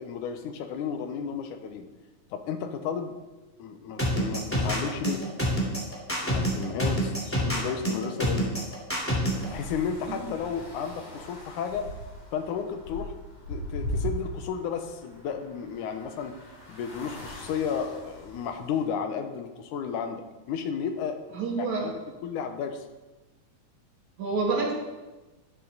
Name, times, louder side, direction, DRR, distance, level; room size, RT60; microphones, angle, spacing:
voice 1, 0.0-1.9 2.3-3.2 3.6-5.2 6.2-8.5 9.3-11.9 12.3-13.1 13.5-20.2 20.5-21.2 21.6-22.9, left 7 dB, 85° left, 7 dB, 2.5 m, -33 dB
sound 1, 4.0-9.4, equal, 5° left, 2.2 m, -26 dB
sound 2, 9.3-18.8, equal, 55° left, 4.2 m, -39 dB
voice 2, 21.3-21.9 24.2-24.7, right 3 dB, 65° right, -3 dB, 3.6 m, -28 dB
11.5 x 11.0 x 4.0 m, 1.2 s
omnidirectional pair, 3.5 m